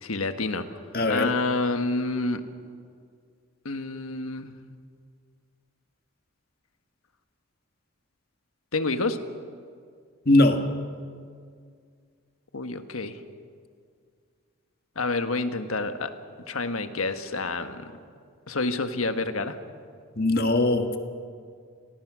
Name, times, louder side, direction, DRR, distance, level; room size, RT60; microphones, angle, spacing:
voice 1, 0.0-0.8 1.1-2.5 3.6-4.5 8.7-9.2 12.5-13.2 14.9-16.1 16.5-17.9 18.5-19.6, left 3 dB, 90° left, 8 dB, 1.5 m, -28 dB
voice 2, 0.9-1.3 10.2-10.6 20.2-21.0, left 2 dB, 45° left, 6 dB, 1.7 m, -21 dB
28.5 x 19.0 x 6.3 m, 2.1 s
head